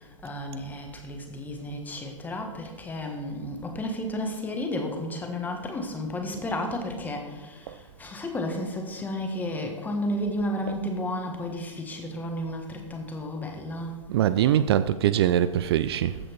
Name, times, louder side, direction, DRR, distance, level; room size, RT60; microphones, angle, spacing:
voice 1, 0.0-14.0 16.1-16.2, left 1 dB, 10° left, 3 dB, 1.4 m, -32 dB
voice 2, 14.1-16.1, right 11 dB, 50° right, 14 dB, 0.4 m, -22 dB
15.0 x 5.0 x 4.5 m, 1.3 s
hypercardioid pair, 130°, 17 cm